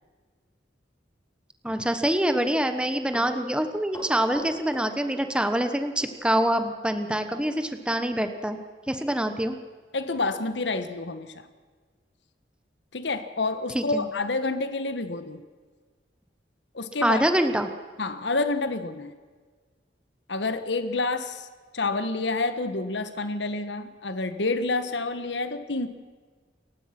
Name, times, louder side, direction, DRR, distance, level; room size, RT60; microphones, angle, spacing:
voice 1, 1.6-8.6 8.9-9.6 13.7-14.1 17.0-17.7, right 1 dB, 5° right, 8 dB, 1.2 m, -25 dB
Run, 2.8-5.7 6.0-6.1 7.4-7.6 8.0-8.1 8.6-8.7 9.0-9.2 9.7-9.8, equal, 15° left, 6.5 m, -43 dB
voice 2, 9.9-11.4 12.9-15.4 16.7-17.2 18.0-19.1 20.3-21.5 21.7-25.9, left 3 dB, 80° left, 10 dB, 1.5 m, -28 dB
28.5 x 15.5 x 6.0 m, 1.5 s
head